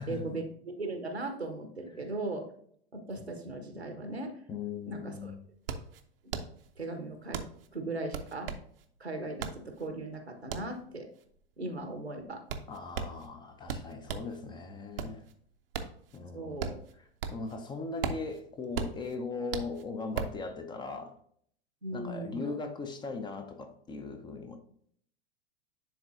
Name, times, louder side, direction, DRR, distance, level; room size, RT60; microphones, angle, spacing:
voice 1, 0.1-2.5 2.9-4.3 4.9-5.3 6.8-7.4 7.7-8.5 9.0-11.1 11.6-12.4 16.3-16.8 21.8-22.5, right 2 dB, 90° right, 1.2 m, -38 dB
voice 2, 4.5-5.4 12.7-15.3 16.1-16.6 17.3-21.2 21.9-24.6, left 4 dB, 15° left, 0.6 m, -39 dB
sound 1, 4.7-4.8 5.1-14.4 14.8-17.6 17.8-20.4, right 6 dB, 65° right, 0.8 m, -38 dB
10.0 x 3.9 x 2.6 m
figure-of-eight pair, 95°, 31 cm